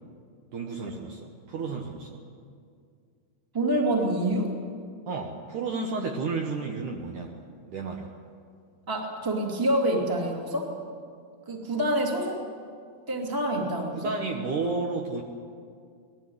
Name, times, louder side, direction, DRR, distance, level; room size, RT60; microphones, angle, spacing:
voice 1, 0.5-2.2 5.1-7.4 7.7-8.1 13.9-15.2, right 4 dB, 65° right, 1 dB, 2.2 m, -32 dB
voice 2, 3.5-4.6 8.9-10.7 11.4-12.5 13.1-14.1, right 1 dB, 10° right, 0 dB, 1.6 m, -27 dB
20.5 x 15.0 x 9.5 m, 2.2 s
omnidirectional pair, 4.7 m